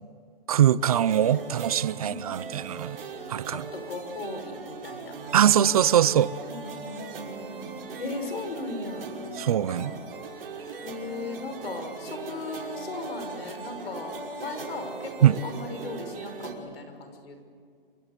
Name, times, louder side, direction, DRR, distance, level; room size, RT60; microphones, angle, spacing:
voice 1, 0.5-3.0 3.3-3.6 5.3-6.3 9.3-10.0 15.2-15.4, right 10 dB, 40° right, 0.6 m, -22 dB
sound 1, 0.8-16.5, right 4 dB, 70° right, 5.8 m, -39 dB
voice 2, 2.0-2.6 3.5-5.1 6.5-7.7 8.0-9.4 9.7-9.9 10.8-14.1 14.4-17.4, left 3 dB, 85° left, 6.1 m, -37 dB
28.5 x 26.0 x 6.8 m
hypercardioid pair, 165°, 29 cm